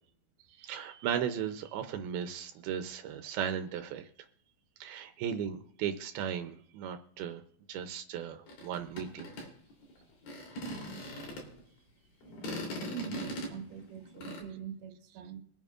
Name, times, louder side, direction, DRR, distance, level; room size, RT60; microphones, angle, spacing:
voice 1, 0.5-4.1 4.8-7.4 7.7-9.3, right 8 dB, 80° right, 2.6 m, -36 dB
sound 1, 8.5-11.6 12.2-14.4, equal, 65° left, 4.9 m, -40 dB
voice 2, 12.7-15.4, right 9 dB, 60° right, 2.3 m, -44 dB
24.0 x 9.0 x 2.5 m
omnidirectional pair, 4.5 m